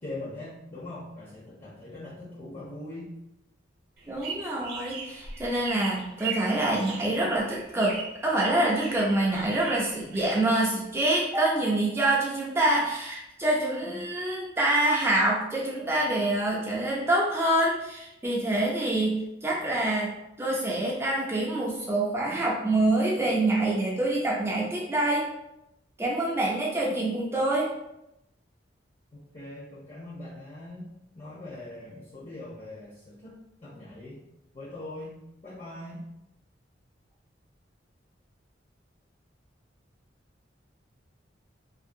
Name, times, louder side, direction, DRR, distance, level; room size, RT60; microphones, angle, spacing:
voice 1, 0.0-3.1 29.1-30.9 31.1-33.3 33.6-34.2 34.5-36.1, left 2 dB, 35° left, -8 dB, 0.7 m, -41 dB
sound 1, 4.0-11.0, right 5 dB, 55° right, 0.8 m, -39 dB
voice 2, 4.1-8.0 8.2-20.1 20.4-25.3 26.0-27.7, right 1 dB, 15° right, -4 dB, 0.4 m, -26 dB
2.7 x 2.5 x 2.6 m, 0.86 s
head